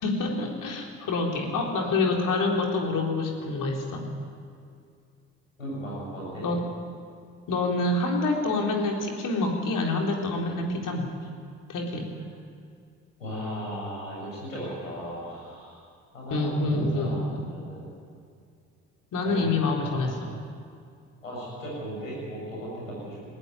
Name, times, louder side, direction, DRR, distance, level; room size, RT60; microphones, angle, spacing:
voice 1, 0.0-4.0 6.4-6.6 7.5-11.3 11.7-12.1 16.3-17.5 19.1-20.1, left 2 dB, 55° left, 1 dB, 3.9 m, -27 dB
voice 2, 5.6-6.5 13.2-15.8 16.1-17.9 19.2-19.5 19.8-20.4 21.2-23.3, equal, 85° left, -5 dB, 7.5 m, -36 dB
19.0 x 18.5 x 9.3 m, 2.3 s
figure-of-eight pair, 45°, 38 cm